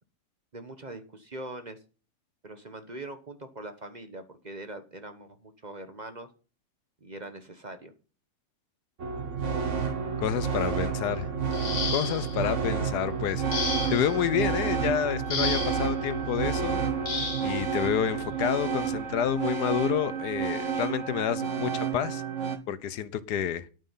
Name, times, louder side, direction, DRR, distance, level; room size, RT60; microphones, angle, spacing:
voice 1, 0.5-1.8 2.4-6.3 7.0-7.9, right 2 dB, 30° right, 1.1 m, -42 dB
sound 1, 9.0-22.6, right 6 dB, 50° right, 1.5 m, -30 dB
voice 2, 10.2-11.3 11.9-16.8 17.4-22.2 22.7-23.7, left 9 dB, 90° left, 1.4 m, -29 dB
sound 2, 11.5-12.4 13.5-14.2 15.3-15.9 17.1-17.5 18.7-18.9 19.4-19.6, left 4 dB, 55° left, 2.3 m, -32 dB
11.0 x 9.0 x 5.6 m
omnidirectional pair, 1.7 m